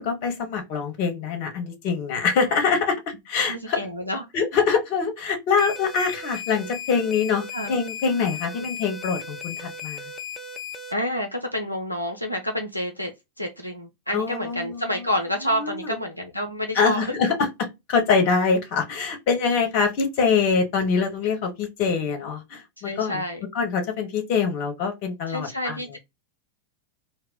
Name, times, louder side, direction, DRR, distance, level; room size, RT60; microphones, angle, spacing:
voice 1, 0.0-3.0 3.3-3.8 4.3-10.0 14.1-14.8 15.6-15.9 16.7-17.3 17.9-23.2 23.5-25.8, left 5 dB, 45° left, 0.8 m, -24 dB
voice 2, 2.4-2.8 3.5-4.2 7.5-7.7 10.9-13.1 13.4-17.1 22.8-23.4 25.3-26.0, equal, 90° left, 0.4 m, -29 dB
sound 1, 5.6-10.9, left 5 dB, 15° left, 0.5 m, -36 dB
2.1 x 2.0 x 3.6 m
figure-of-eight pair, 90°, 0 cm